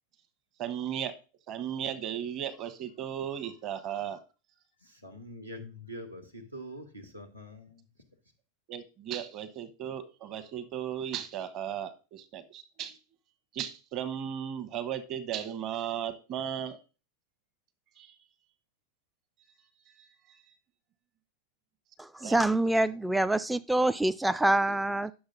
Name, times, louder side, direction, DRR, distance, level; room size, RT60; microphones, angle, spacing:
voice 1, 0.6-1.1 1.5-4.2 8.7-13.0 13.5-16.8 18.0-18.1 22.2-22.4, right 9 dB, 35° right, 11 dB, 1.1 m, -36 dB
voice 2, 5.0-7.8, equal, 85° right, 3 dB, 1.7 m, -44 dB
voice 3, 22.0-25.1, right 1 dB, 5° right, 13 dB, 0.3 m, -26 dB
10.0 x 6.6 x 3.9 m, 0.33 s
figure-of-eight pair, 90°, 0 cm